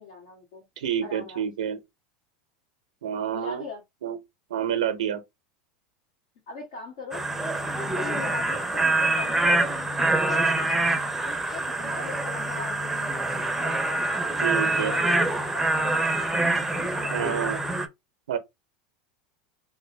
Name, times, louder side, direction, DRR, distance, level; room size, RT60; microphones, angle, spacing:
voice 1, 0.0-0.7 1.0-1.7 3.3-3.8 6.5-7.2 7.8-9.7 10.2-10.7 11.2-14.2 14.8-16.1 16.7-17.6, left 4 dB, 70° left, 1.6 m, -41 dB
voice 2, 0.8-1.8 3.0-3.6 4.0-4.2 4.5-5.2 14.4-14.9 17.1-17.6 18.3-18.4, right 9 dB, 90° right, 0.6 m, -28 dB
sound 1, 7.1-17.9, right 2 dB, 5° right, 0.6 m, -25 dB
3.3 x 2.2 x 3.2 m
hypercardioid pair, 105°, 3 cm